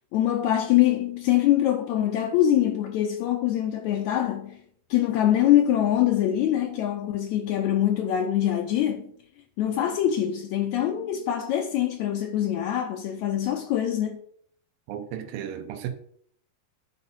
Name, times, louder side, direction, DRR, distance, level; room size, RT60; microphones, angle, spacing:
voice 1, 0.1-4.6 4.9-9.1 9.6-14.2, left 11 dB, 80° left, 1.7 m, -24 dB
voice 2, 14.9-15.9, right 10 dB, 85° right, 2.5 m, -34 dB
12.0 x 4.1 x 5.4 m
omnidirectional pair, 4.0 m